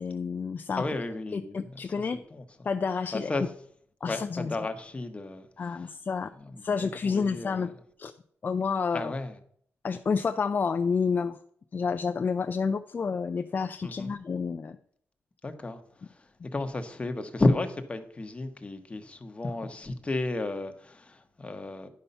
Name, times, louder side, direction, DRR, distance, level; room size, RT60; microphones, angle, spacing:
voice 1, 0.0-0.9 1.3-2.2 2.6-3.3 4.0-4.5 5.6-6.3 6.6-7.7 8.0-8.1 8.4-9.1 9.8-11.4 11.7-14.8, left 5 dB, 40° left, 0.4 m, -29 dB
voice 2, 0.8-1.6 2.1-2.4 3.1-3.4 4.0-5.9 6.4-7.7 8.9-9.4 13.8-14.1 15.4-15.8 16.5-21.9, left 2 dB, 25° left, 1.1 m, -32 dB
10.5 x 5.6 x 5.5 m
cardioid pair, 95°, 5 cm